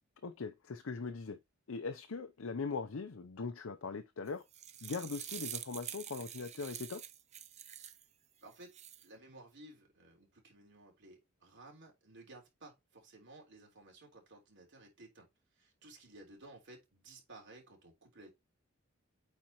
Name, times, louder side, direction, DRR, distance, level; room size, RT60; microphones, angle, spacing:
voice 1, 0.2-1.4 1.7-4.4 4.8-7.0, left 4 dB, 80° left, 0.6 m, -40 dB
sound 1, 4.3-8.0 8.5-9.0, right 10 dB, 35° right, 0.6 m, -46 dB
voice 2, 8.4-15.3 15.6-18.3, right 2 dB, 60° right, 3.4 m, -56 dB
8.7 x 4.3 x 3.0 m
head